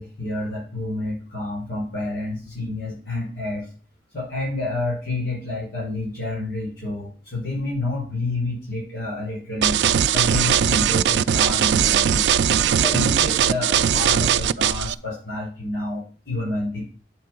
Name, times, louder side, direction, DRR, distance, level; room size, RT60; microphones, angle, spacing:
voice 1, 0.0-3.7 4.1-9.8 10.1-12.3 12.7-16.9, left 2 dB, 70° left, -5 dB, 4.3 m, -29 dB
sound 1, 9.6-14.9, right 9 dB, 80° right, 0.3 m, -19 dB
8.3 x 3.8 x 6.1 m, 0.41 s
head